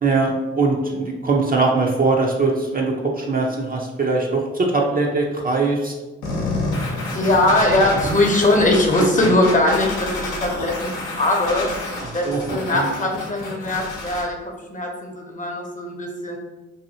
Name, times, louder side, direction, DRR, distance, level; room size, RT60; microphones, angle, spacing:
voice 1, 0.0-5.9 8.0-8.1 9.2-9.3 12.0-12.9, right 3 dB, 30° right, 0 dB, 0.5 m, -21 dB
sound 1, 6.2-14.2, left 2 dB, 75° left, 0.8 m, -29 dB
voice 2, 7.1-11.7 12.1-14.4 14.7-16.4, left 1 dB, 25° left, 0 dB, 0.7 m, -20 dB
2.7 x 2.6 x 2.7 m, 1.2 s
hypercardioid pair, 40°, 31 cm